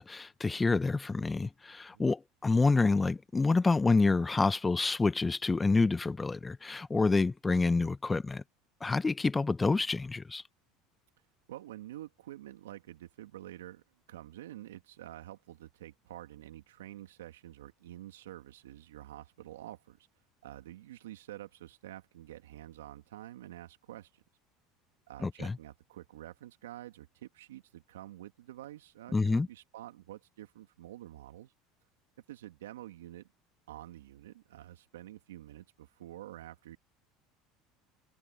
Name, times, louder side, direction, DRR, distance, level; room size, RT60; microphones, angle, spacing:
voice 1, 0.0-8.4 8.8-10.4 25.2-25.6 29.1-29.5, left 3 dB, 20° left, 1.1 m, -28 dB
voice 2, 11.5-20.1 20.4-24.2 25.1-31.5 32.3-33.3 33.7-36.8, right 14 dB, 85° right, 2.6 m, -48 dB
open air
hypercardioid pair, 80°, 0 cm